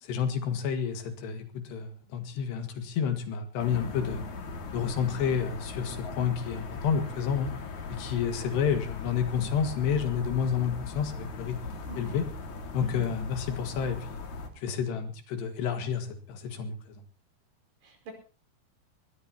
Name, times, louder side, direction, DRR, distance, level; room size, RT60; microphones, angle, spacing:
voice 1, 0.0-4.2 4.7-7.5 7.9-11.6 12.0-12.3 12.7-14.2 14.6-16.8, left 7 dB, 75° left, 6 dB, 3.9 m, -30 dB
sound 1, 3.6-14.5, left 3 dB, 50° left, 3.2 m, -39 dB
voice 2, 11.9-12.2 12.8-13.1 17.8-18.1, left 2 dB, 70° right, 3 dB, 6.9 m, -44 dB
21.0 x 20.5 x 2.9 m, 0.35 s
omnidirectional pair, 4.9 m